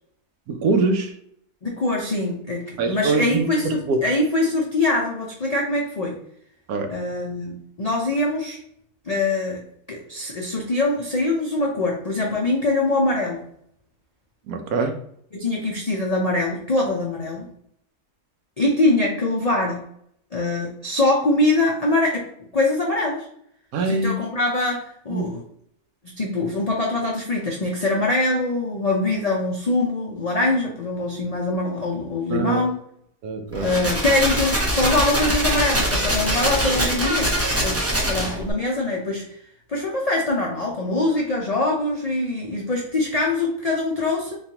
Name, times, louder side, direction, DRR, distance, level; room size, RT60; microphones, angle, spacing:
voice 1, 0.5-1.1 2.8-4.0 6.7-6.9 14.5-15.0 23.7-24.2 25.1-25.2 32.3-32.6 33.2-33.7, right 3 dB, 70° right, 5 dB, 1.1 m, -23 dB
voice 2, 1.6-6.2 6.9-8.6 9.1-9.6 9.9-13.4 15.3-17.5 18.6-19.8 20.3-23.3 23.9-25.4 26.0-32.8 33.6-37.3 37.6-39.2 39.7-44.4, left 2 dB, 85° left, -2 dB, 0.3 m, -23 dB
sound 1, 33.5-38.5, equal, 15° right, 0.6 m, -23 dB
4.2 x 3.2 x 2.8 m, 0.68 s
omnidirectional pair, 1.7 m